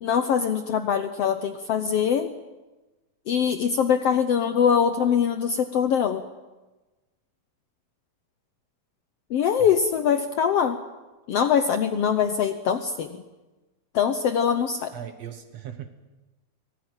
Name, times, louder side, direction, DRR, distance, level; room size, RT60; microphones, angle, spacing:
voice 1, 0.0-2.3 3.3-6.2 9.3-10.8 11.3-13.2 13.9-14.9, left 7 dB, 85° left, 9 dB, 1.3 m, -23 dB
voice 2, 14.9-15.9, right 9 dB, 60° right, 8 dB, 2.0 m, -38 dB
25.5 x 18.5 x 9.0 m, 1.1 s
omnidirectional pair, 4.1 m